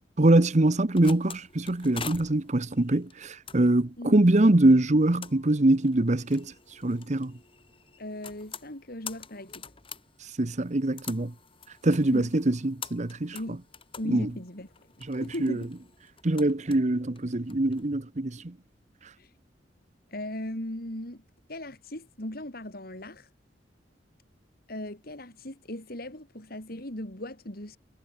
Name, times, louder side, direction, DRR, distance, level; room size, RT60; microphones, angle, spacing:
voice 1, 0.2-6.5 6.8-7.3 10.4-11.3 11.8-13.4 14.1-14.3 15.1-15.6 16.2-18.5, right 1 dB, 40° right, 1.0 m, -23 dB
sound 1, 0.6-17.9, left 6 dB, 30° left, 6.8 m, -46 dB
voice 2, 8.0-9.6 12.1-12.3 13.3-13.6 14.0-14.7 15.2-15.7 19.2-19.3 20.1-21.2 21.5-23.3 24.7-27.8, left 1 dB, 55° left, 5.0 m, -38 dB
head